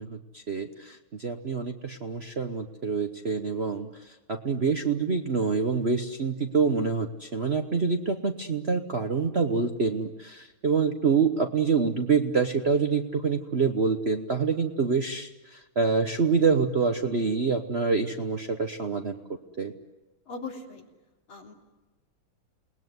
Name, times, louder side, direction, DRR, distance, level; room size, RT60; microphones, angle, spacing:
voice 1, 0.0-19.2 19.6-19.7, right 5 dB, 40° right, 5 dB, 0.9 m, -26 dB
voice 2, 20.3-20.9 21.3-21.5, left 4 dB, 75° left, 0 dB, 4.2 m, -39 dB
28.5 x 20.0 x 9.5 m, 1.1 s
omnidirectional pair, 2.3 m